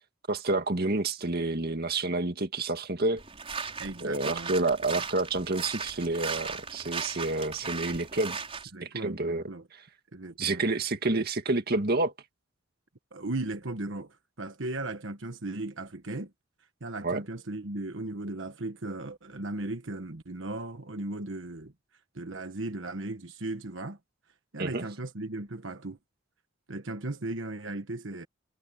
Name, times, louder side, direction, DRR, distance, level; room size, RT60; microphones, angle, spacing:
voice 1, 0.3-3.2 4.0-8.4 8.8-9.4 10.4-12.1 17.0-17.2 24.6-24.9, right 2 dB, 50° right, 2.0 m, -29 dB
sound 1, 3.2-8.6, right 5 dB, 30° right, 4.9 m, -37 dB
voice 2, 3.8-4.5 7.6-7.7 8.7-9.7 10.1-10.6 13.1-16.3 16.8-21.7 22.1-24.0 24.5-26.0 26.7-28.3, right 2 dB, 65° right, 1.3 m, -36 dB
head